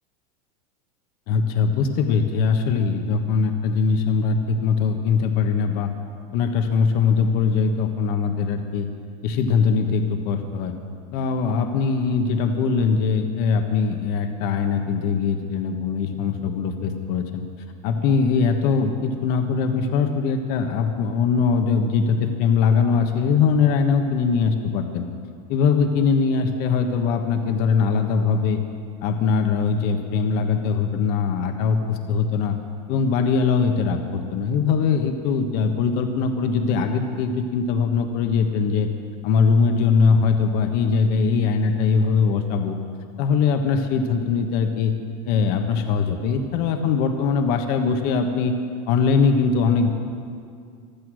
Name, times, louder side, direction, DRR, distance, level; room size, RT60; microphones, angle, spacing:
voice 1, 1.3-5.9 6.3-8.9 9.2-10.7 11.1-17.4 17.8-25.1 25.5-28.6 29.0-32.5 32.9-38.9 39.2-42.8 43.2-44.9 45.3-48.5 48.9-49.9, left 5 dB, 50° left, 6 dB, 1.4 m, -21 dB
15.5 x 12.5 x 6.4 m, 2.2 s
supercardioid pair, 135°, 20 cm